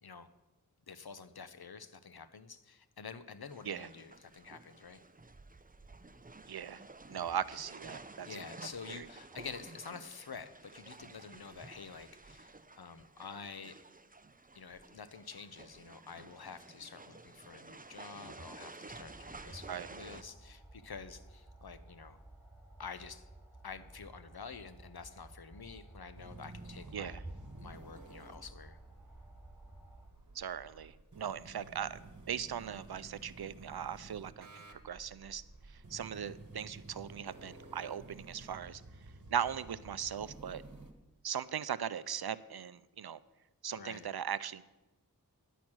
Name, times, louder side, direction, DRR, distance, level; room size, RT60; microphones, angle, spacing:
voice 1, 0.9-5.0 8.3-13.8 14.5-22.2 22.8-23.3 23.6-27.2 27.6-28.8 43.8-44.1, left 5 dB, 75° left, 12 dB, 0.8 m, -48 dB
sound 1, 3.5-20.2, right 3 dB, 25° right, 0.6 m, -52 dB
voice 2, 6.5-6.8 7.1-8.4 8.9-9.1 19.7-19.9 26.9-27.2 30.3-32.0 32.3-35.4 35.9-38.8 39.3-40.6 41.2-43.2 43.6-44.6, right 8 dB, 80° right, 16 dB, 0.5 m, -39 dB
sound 2, 18.9-30.1, right 2 dB, 5° right, 2.3 m, -54 dB
sound 3, 26.2-40.9, right 2 dB, 55° right, 1.4 m, -53 dB
10.0 x 6.2 x 8.7 m, 1.0 s
wide cardioid pair, 50°, 37 cm